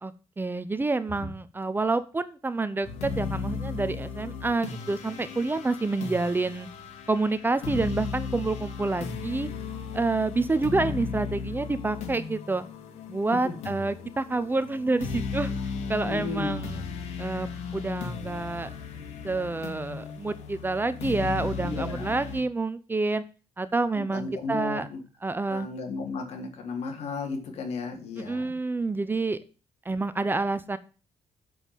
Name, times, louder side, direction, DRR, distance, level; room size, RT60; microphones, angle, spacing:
voice 1, 0.0-6.7 7.1-9.5 9.9-12.6 13.1-15.5 15.9-16.8 17.2-18.7 19.2-23.2 23.6-24.9 25.2-25.7 28.3-29.4 29.9-30.8, right 3 dB, 20° right, 13 dB, 0.8 m, -28 dB
sound 1, 2.8-22.4, left 5 dB, 90° left, 2.6 m, -36 dB
voice 2, 16.0-16.7 21.6-22.1 23.9-25.0 25.5-28.6, left 4 dB, 70° left, 2 dB, 3.7 m, -34 dB
7.9 x 7.5 x 6.4 m, 0.35 s
cardioid pair, 120°, 11 cm